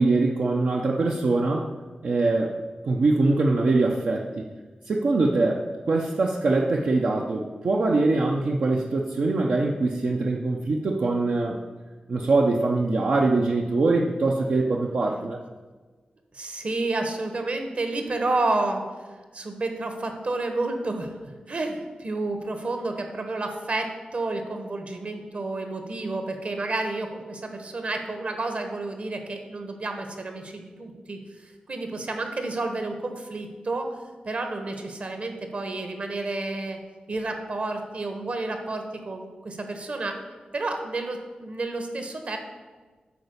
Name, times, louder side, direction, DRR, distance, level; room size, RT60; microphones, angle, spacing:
voice 1, 0.0-1.7 2.0-2.5 2.8-4.4 4.9-5.6 5.9-11.6 12.1-15.4, right 3 dB, 70° right, -1 dB, 0.7 m, -23 dB
voice 2, 16.3-18.8 19.3-33.9 34.2-36.8 37.1-40.2 40.5-42.4, right 2 dB, 55° right, 5 dB, 1.3 m, -30 dB
8.4 x 4.8 x 6.7 m, 1.3 s
wide cardioid pair, 85°, 3 cm